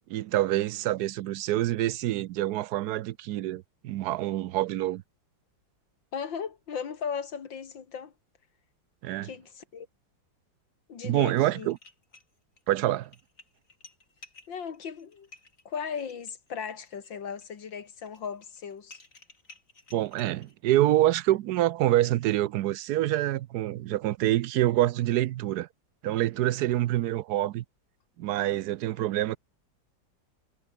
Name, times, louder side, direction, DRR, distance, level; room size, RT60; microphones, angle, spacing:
voice 1, 0.1-5.0 9.0-9.3 11.0-11.8 12.7-13.1 19.9-25.7 26.0-27.6 28.2-29.4, right 14 dB, 70° right, 1.0 m, -26 dB
voice 2, 6.1-8.1 9.2-9.9 10.9-11.7 14.5-15.3 15.6-19.0, left 7 dB, 80° left, 2.7 m, -37 dB
sound 1, 11.3-11.4 11.7-12.6 13.0-20.9, left 3 dB, 45° left, 4.4 m, -55 dB
omnidirectional pair, 2.0 m